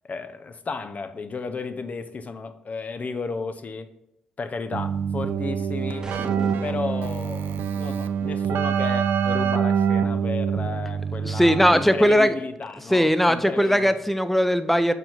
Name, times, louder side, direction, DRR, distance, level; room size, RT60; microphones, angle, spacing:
voice 1, 0.0-3.9 4.4-6.1 6.6-13.9, left 4 dB, 45° left, 0.7 m, -33 dB
Keyboard (musical), 4.7-12.0, right 7 dB, 75° right, 0.5 m, -25 dB
sound 1, 6.0-7.1, right 2 dB, 20° right, 1.0 m, -36 dB
voice 2, 11.2-12.3 12.9-14.9, equal, 5° left, 0.7 m, -19 dB
6.8 x 4.5 x 4.0 m
supercardioid pair, 50°, 4 cm